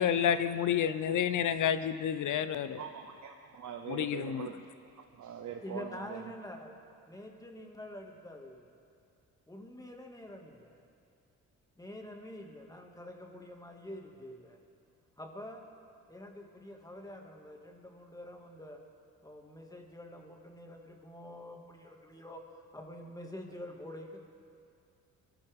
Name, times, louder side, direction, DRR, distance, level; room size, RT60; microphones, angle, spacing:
voice 1, 0.0-2.8 3.9-4.5, left 9 dB, 65° left, 12 dB, 0.8 m, -29 dB
voice 2, 2.8-4.7 5.0-6.3, right 8 dB, 60° right, 3 dB, 1.0 m, -43 dB
voice 3, 5.6-6.8 7.1-8.7 9.5-10.8 11.8-14.6 15.2-15.7 16.1-18.8 19.2-22.4 22.7-24.2, left 1 dB, 10° left, 1 dB, 2.1 m, -46 dB
22.0 x 13.0 x 3.6 m, 2.5 s
cardioid pair, 80°, 33 cm